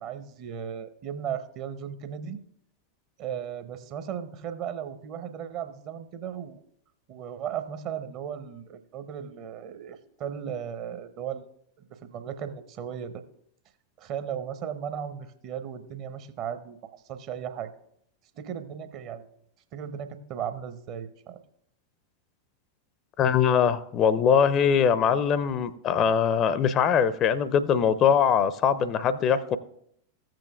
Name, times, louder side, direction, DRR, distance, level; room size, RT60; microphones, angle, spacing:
voice 1, 0.0-2.4 3.2-6.6 7.1-11.5 12.1-13.2 14.0-17.7 18.3-19.3 19.7-21.4, right 8 dB, 40° right, 0.7 m, -36 dB
voice 2, 23.2-29.6, left 7 dB, 30° left, 0.5 m, -22 dB
15.0 x 7.6 x 2.4 m
figure-of-eight pair, 90°, 0 cm